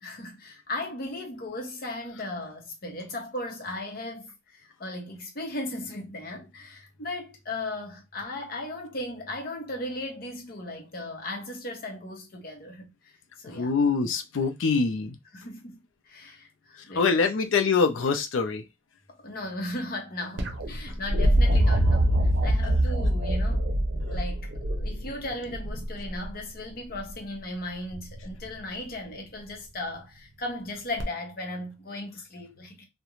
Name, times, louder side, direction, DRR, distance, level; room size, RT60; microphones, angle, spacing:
voice 1, 0.0-13.7 15.3-15.8 16.0-17.2 19.1-22.1 22.4-23.7 24.1-32.8, left 1 dB, 50° left, 0.8 m, -37 dB
voice 2, 13.6-15.2 17.0-18.6, left 4 dB, 85° left, 0.5 m, -24 dB
sound 1, 20.4-26.3 27.9-28.4 31.0-31.1, equal, 65° right, 0.6 m, -24 dB
2.4 x 2.1 x 2.9 m
head